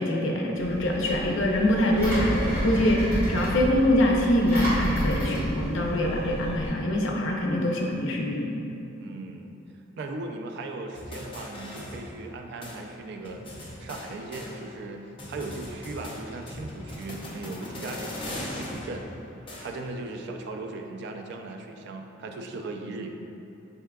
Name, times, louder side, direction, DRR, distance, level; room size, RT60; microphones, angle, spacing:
voice 1, 0.0-8.5, left 1 dB, 75° left, 0 dB, 0.5 m, -24 dB
Engine, 0.6-6.7, equal, 10° right, 1.5 m, -30 dB
voice 2, 9.0-9.5 10.0-18.2 18.6-19.1 19.6-23.1, right 2 dB, 60° right, 3 dB, 0.3 m, -38 dB
sound 1, 10.9-12.4 12.6-12.8 13.2-14.9 15.2-20.0, left 1 dB, 25° left, 0.6 m, -39 dB
5.5 x 3.5 x 2.2 m, 2.9 s
head